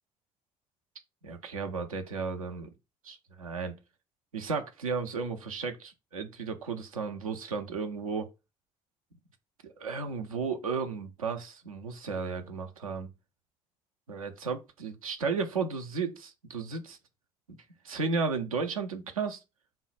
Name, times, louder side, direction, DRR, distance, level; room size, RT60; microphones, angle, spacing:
voice 1, 1.2-2.7 3.0-3.7 4.3-8.3 9.6-13.1 14.1-17.0 17.8-19.4, right 5 dB, 80° right, 0.5 m, -34 dB
3.7 x 2.1 x 4.0 m
figure-of-eight pair, 45°, 18 cm